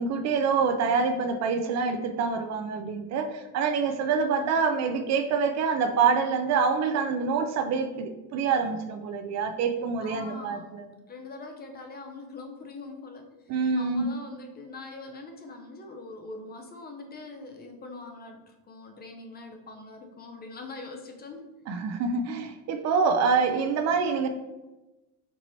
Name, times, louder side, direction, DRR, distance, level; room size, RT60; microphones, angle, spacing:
voice 1, 0.0-10.9 13.5-14.1 21.7-24.3, right 5 dB, 45° right, 7 dB, 0.5 m, -26 dB
voice 2, 4.2-4.6 10.0-10.7 11.1-21.5, left 3 dB, 25° left, 4 dB, 0.5 m, -43 dB
4.6 x 2.8 x 4.0 m, 1.1 s
cardioid pair, 125°, 38 cm